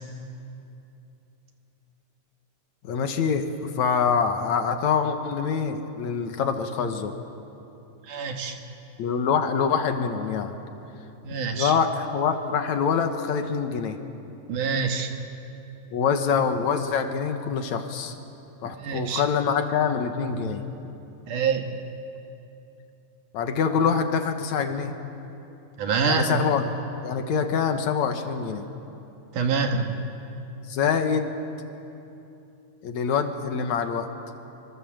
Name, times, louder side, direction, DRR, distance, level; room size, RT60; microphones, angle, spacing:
voice 1, 2.8-7.1 9.0-10.5 11.5-14.0 15.9-18.1 18.6-20.6 23.3-25.0 26.0-26.6 27.0-28.7 30.7-31.3 32.8-34.1, left 6 dB, 65° left, 6 dB, 2.5 m, -25 dB
voice 2, 8.1-8.6 11.2-11.7 14.5-15.1 18.6-19.2 21.3-21.7 25.8-26.4 29.3-29.9, right 5 dB, 70° right, 4 dB, 2.9 m, -26 dB
26.0 x 25.5 x 7.6 m, 2.9 s
omnidirectional pair, 3.9 m